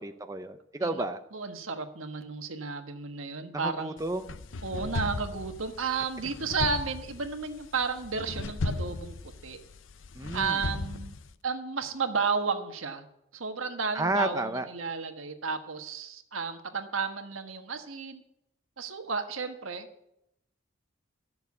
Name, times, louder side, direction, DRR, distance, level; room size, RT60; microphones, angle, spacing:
voice 1, 0.0-1.2 3.6-4.3 10.2-10.6 13.9-14.7, right 2 dB, 15° right, 7 dB, 0.6 m, -31 dB
voice 2, 1.3-3.9 4.6-9.1 9.4-9.6 10.3-11.1 11.4-13.0 13.3-18.2 18.8-19.9, right 4 dB, 85° right, 6 dB, 1.4 m, -32 dB
sound 1, 4.0-11.3, left 2 dB, 75° left, 0.7 m, -37 dB
13.0 x 6.8 x 8.4 m, 0.82 s
head